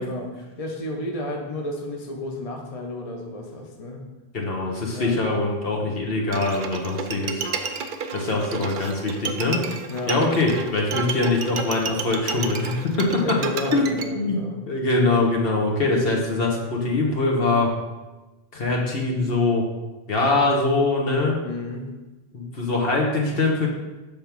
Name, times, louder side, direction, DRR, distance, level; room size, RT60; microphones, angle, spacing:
voice 1, 0.0-4.1 4.9-5.1 9.9-10.2 13.1-14.6 21.4-22.0, left 1 dB, 35° left, 1 dB, 0.9 m, -31 dB
voice 2, 4.3-7.4 8.1-9.6 10.1-13.2 13.7-14.4 14.7-17.7 18.5-19.6 20.1-21.4 22.3-23.7, left 3 dB, 65° left, 0 dB, 1.4 m, -23 dB
Bowed string instrument, 6.3-14.0, right 5 dB, 60° right, 0.8 m, -31 dB
7.5 x 3.5 x 6.0 m, 1.1 s
omnidirectional pair, 1.1 m